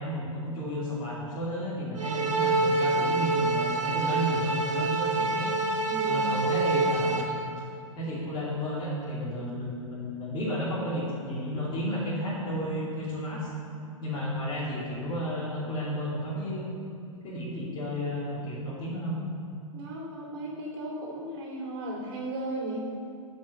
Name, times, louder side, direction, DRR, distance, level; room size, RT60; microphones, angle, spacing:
voice 1, 0.0-5.5 6.0-7.3 7.9-13.5 14.0-16.6 17.2-19.1, equal, 25° left, -7 dB, 2.6 m, -32 dB
sound 1, 1.9-7.2, right 3 dB, 75° right, 2.6 m, -27 dB
voice 2, 5.9-6.3 19.7-22.9, right 1 dB, 45° right, -3 dB, 2.8 m, -35 dB
12.5 x 5.4 x 6.6 m, 2.4 s
figure-of-eight pair, 110°, 17 cm